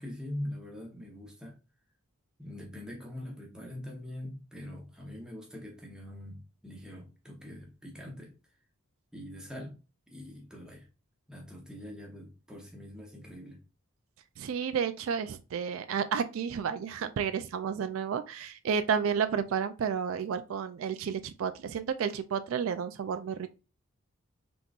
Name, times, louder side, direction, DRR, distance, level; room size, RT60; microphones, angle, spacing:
voice 1, 0.0-1.6 2.4-8.3 9.1-9.8 10.1-10.9 11.3-13.6, left 1 dB, 5° right, 0.8 m, -43 dB
voice 2, 14.4-23.5, right 7 dB, 75° right, 0.3 m, -31 dB
3.6 x 3.0 x 2.4 m
head